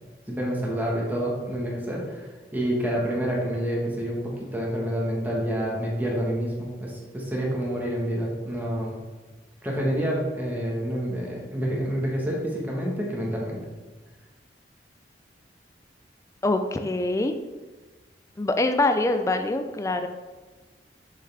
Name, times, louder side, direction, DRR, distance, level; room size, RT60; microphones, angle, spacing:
voice 1, 0.3-9.0 9.6-13.6, equal, 10° right, -3 dB, 1.2 m, -28 dB
voice 2, 16.4-17.3 18.4-20.1, left 2 dB, 15° left, 7 dB, 0.3 m, -24 dB
6.6 x 6.4 x 3.3 m, 1.3 s
head